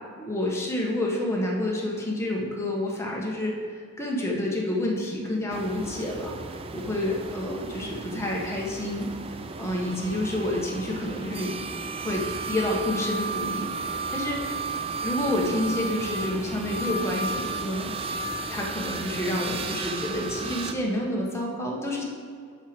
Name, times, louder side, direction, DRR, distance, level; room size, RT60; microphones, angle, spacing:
voice 1, 0.2-6.3 6.7-9.1 9.6-11.6 12.0-14.4 15.0-17.9 18.5-22.0, left 1 dB, 10° left, -3 dB, 1.1 m, -29 dB
sound 1, 5.5-20.7, right 3 dB, 25° right, 0.3 m, -34 dB
6.5 x 6.3 x 5.1 m, 2.2 s
head